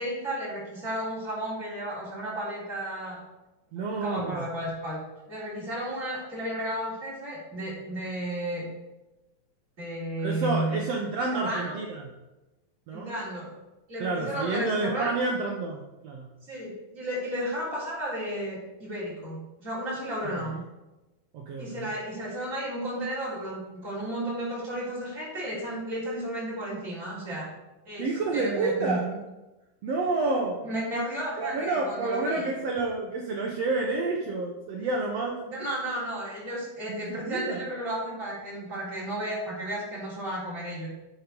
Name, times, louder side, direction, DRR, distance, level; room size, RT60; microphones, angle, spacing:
voice 1, 0.0-3.2 3.8-5.0 5.3-8.7 9.8-10.8 11.3-11.8 12.9-13.5 13.9-15.1 16.4-20.6 21.6-27.5 27.9-28.1 28.3-29.0 30.6-32.5 35.5-40.9, right 1 dB, 20° right, -6 dB, 3.5 m, -33 dB
voice 2, 3.7-4.5 10.2-12.0 12.9-13.1 14.0-16.3 20.4-20.6 21.3-21.9 28.0-29.1 29.8-30.6 31.4-35.7 36.9-37.6, right 3 dB, 85° right, 0 dB, 1.4 m, -29 dB
9.0 x 6.3 x 5.4 m, 1.0 s
omnidirectional pair, 4.2 m